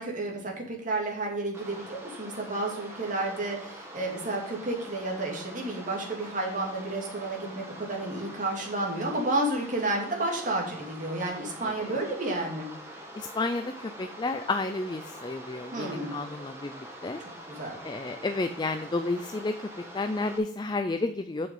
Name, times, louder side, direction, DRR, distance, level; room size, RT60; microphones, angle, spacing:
voice 1, 0.0-12.7 15.7-16.1 17.2-17.8, right 2 dB, 45° right, 0 dB, 2.4 m, -31 dB
sound 1, 1.5-20.4, right 1 dB, 15° right, 1.7 m, -44 dB
voice 2, 11.6-12.0 13.2-16.7 17.0-17.2 17.8-19.6 19.9-21.5, left 3 dB, 25° left, 8 dB, 0.4 m, -31 dB
7.5 x 6.0 x 5.4 m, 0.68 s
head